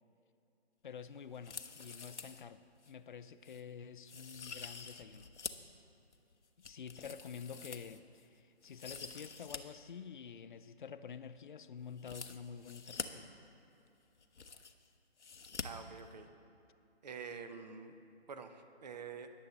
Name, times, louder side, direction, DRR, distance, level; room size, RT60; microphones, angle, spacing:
voice 1, 0.8-5.3 6.6-13.3, left 7 dB, 45° left, 13 dB, 0.5 m, -49 dB
sound 1, 1.3-2.4 2.8-2.9 3.4-3.6 4.1-5.7 6.1-8.2 8.6-9.6 9.9-10.0 12.0-13.1 13.9-14.0 14.1-14.9 15.2-15.6 15.9-16.0, left 5 dB, 85° left, 0.9 m, -47 dB
voice 2, 15.6-16.3 17.0-17.9 18.3-19.3, right 6 dB, 40° right, 8 dB, 0.8 m, -47 dB
21.0 x 7.4 x 4.0 m, 2.7 s
figure-of-eight pair, 155°, 34 cm